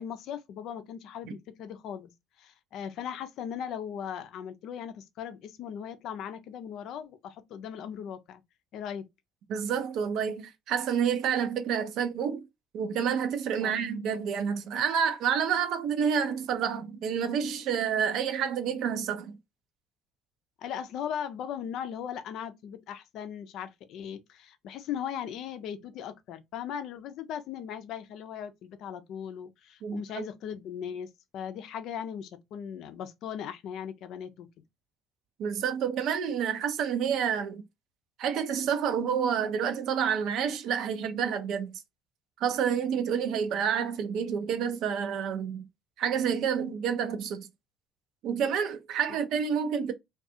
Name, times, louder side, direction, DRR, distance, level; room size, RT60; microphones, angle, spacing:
voice 1, 0.0-2.1 2.4-8.4 8.7-9.1 13.6-13.8 20.6-34.5, left 8 dB, 65° left, 0.4 m, -38 dB
voice 2, 9.5-12.4 12.7-19.4 29.8-30.3 35.4-37.6 38.2-41.7 42.4-45.7 46.0-47.5 48.2-49.9, right 7 dB, 65° right, 0.5 m, -29 dB
2.4 x 2.3 x 2.6 m
hypercardioid pair, 60°, 0 cm